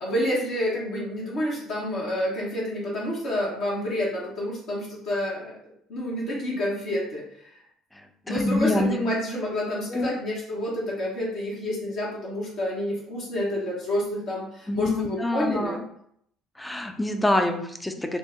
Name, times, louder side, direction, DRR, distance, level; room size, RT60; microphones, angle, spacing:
voice 1, 0.0-5.6 5.9-7.5 8.3-15.8, left 1 dB, 60° left, -5 dB, 0.9 m, -29 dB
voice 2, 8.3-9.0 9.9-10.1 14.7-15.8 16.6-18.2, left 2 dB, 10° left, 5 dB, 0.4 m, -26 dB
2.8 x 2.0 x 3.5 m, 0.70 s
hypercardioid pair, 55°, 0 cm